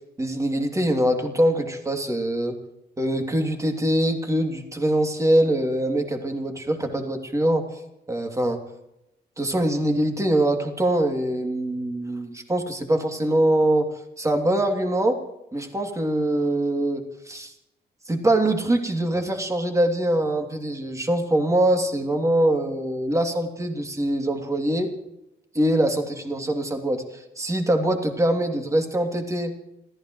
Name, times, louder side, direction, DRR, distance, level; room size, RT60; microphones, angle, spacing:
voice 1, 0.2-2.6 3.0-7.7 8.1-8.6 9.4-13.9 14.2-15.2 15.5-17.5 18.1-24.9 25.5-27.0 27.4-29.5, right 1 dB, 15° right, 3 dB, 2.9 m, -23 dB
29.0 x 15.0 x 3.2 m, 0.87 s
cardioid pair, 105°, 18 cm